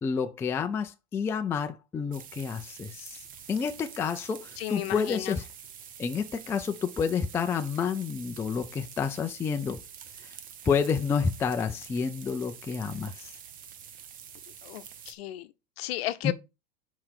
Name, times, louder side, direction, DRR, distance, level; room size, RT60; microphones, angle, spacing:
voice 1, 0.0-3.2 3.5-5.4 6.0-9.8 10.7-13.3 16.2-16.3, left 6 dB, 10° left, 0.3 m, -29 dB
sound 1, 2.1-15.1, right 8 dB, 25° right, 0.7 m, -47 dB
voice 2, 4.6-5.4 14.6-16.3, left 15 dB, 65° left, 0.8 m, -34 dB
5.6 x 4.9 x 4.5 m
supercardioid pair, 130°, 32 cm